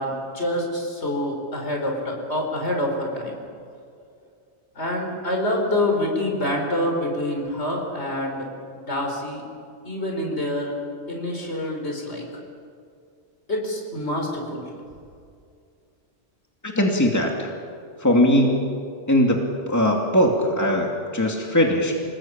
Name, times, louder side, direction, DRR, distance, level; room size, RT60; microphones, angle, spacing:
voice 1, 0.0-3.4 4.7-8.5 8.7-9.4 9.8-10.7 11.1-12.2 13.5-14.7, left 1 dB, 65° left, 1 dB, 5.1 m, -26 dB
voice 2, 16.6-17.5 18.0-18.7 19.1-21.9, equal, 15° left, 1 dB, 2.5 m, -20 dB
27.5 x 19.5 x 8.9 m, 2.4 s
omnidirectional pair, 1.2 m